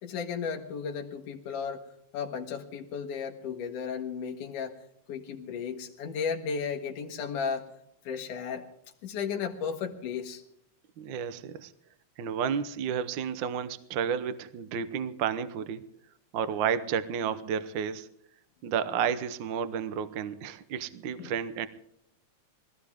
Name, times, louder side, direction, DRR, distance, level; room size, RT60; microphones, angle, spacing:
voice 1, 0.0-1.9 2.1-4.8 5.1-7.7 8.0-8.6 9.0-10.4 21.2-21.3, left 6 dB, 90° left, 3 dB, 2.9 m, -34 dB
voice 2, 11.0-11.7 12.2-15.8 16.3-18.1 18.6-21.7, right 7 dB, 85° right, 12 dB, 1.0 m, -31 dB
21.5 x 16.5 x 3.6 m, 0.74 s
omnidirectional pair, 3.5 m